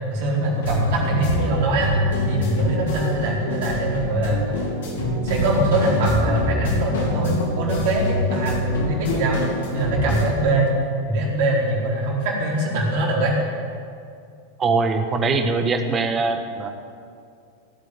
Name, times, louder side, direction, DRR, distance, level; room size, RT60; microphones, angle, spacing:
voice 1, 0.1-1.9 2.3-4.4 5.2-9.4 9.7-10.7 11.1-13.4, right 1 dB, 50° right, -3 dB, 4.6 m, -22 dB
sound 1, 0.6-10.2, left 1 dB, 60° left, 3.8 m, -25 dB
voice 2, 14.6-16.7, right 4 dB, 20° right, 6 dB, 1.4 m, -22 dB
17.5 x 8.4 x 9.5 m, 2.3 s
figure-of-eight pair, 90°, 0 cm